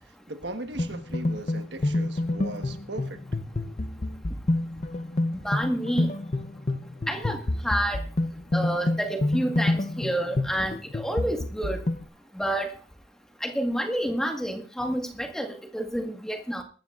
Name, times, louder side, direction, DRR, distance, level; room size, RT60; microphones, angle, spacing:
voice 1, 0.0-3.2, right 2 dB, 75° right, 7 dB, 1.4 m, -38 dB
sound 1, 0.8-12.0, left 2 dB, 40° left, 0.7 m, -28 dB
voice 2, 5.4-6.1 7.1-8.0 8.5-11.8 12.3-12.8 13.4-16.6, right 1 dB, 5° left, 2 dB, 1.6 m, -29 dB
22.5 x 13.0 x 2.5 m, 0.38 s
head